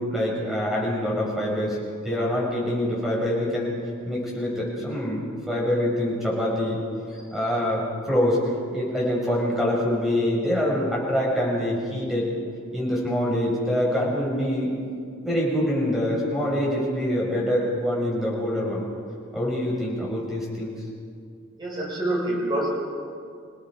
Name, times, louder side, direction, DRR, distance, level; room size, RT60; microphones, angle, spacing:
voice 1, 0.0-1.8 2.0-3.7 4.0-5.2 5.5-6.8 7.1-7.8 8.1-8.4 8.7-12.3 12.7-14.8 15.2-18.8 19.3-20.7, left 1 dB, ahead, -4 dB, 6.2 m, -25 dB
voice 2, 21.6-22.7, right 1 dB, 20° right, -3 dB, 6.0 m, -26 dB
28.5 x 18.0 x 5.2 m, 2.3 s
head